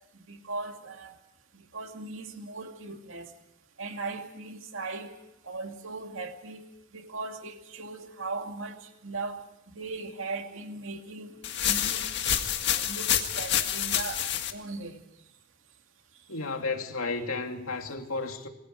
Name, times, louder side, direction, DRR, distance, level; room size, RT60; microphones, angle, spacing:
voice 1, 0.3-1.2 1.5-3.3 3.8-5.2 5.4-6.7 6.9-9.4 9.7-11.4 11.6-12.1 12.7-15.0, right 3 dB, 65° right, 2.5 m, -38 dB
sound 1, 11.4-14.5, left 10 dB, 50° left, 1.9 m, -28 dB
voice 2, 16.3-18.5, left 3 dB, 80° left, 2.9 m, -32 dB
27.5 x 22.5 x 4.9 m
head